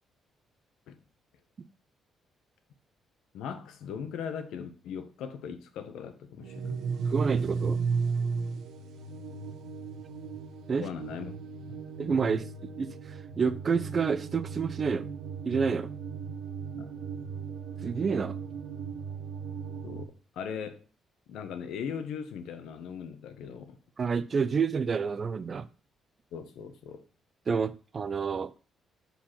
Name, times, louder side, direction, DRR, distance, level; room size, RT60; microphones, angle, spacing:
voice 1, 3.3-6.8 10.7-11.4 11.7-11.8 16.7-16.9 19.8-20.8 21.3-23.8 26.3-27.0, left 7 dB, 85° left, 1.1 m, -39 dB
sound 1, 6.4-20.0, right 5 dB, 85° right, 1.0 m, -35 dB
voice 2, 7.1-7.8 10.7-10.8 12.0-15.0 15.4-15.9 17.8-18.4 24.0-25.7 27.5-28.5, right 5 dB, 40° right, 0.7 m, -29 dB
5.6 x 4.7 x 5.8 m
cardioid pair, 90°, 0 cm